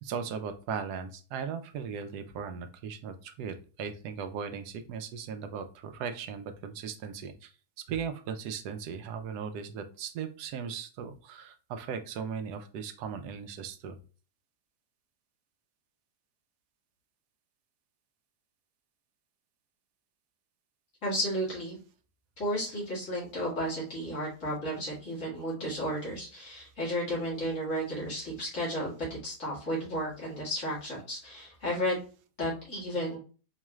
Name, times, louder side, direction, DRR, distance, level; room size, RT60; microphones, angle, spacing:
voice 1, 0.0-7.5 7.9-14.0, right 6 dB, 85° right, 8 dB, 1.1 m, -38 dB
voice 2, 21.0-21.8 22.4-28.9 29.2-32.0 32.4-33.2, equal, 50° left, -6 dB, 2.2 m, -33 dB
4.6 x 3.1 x 2.3 m, 0.37 s
omnidirectional pair, 1.7 m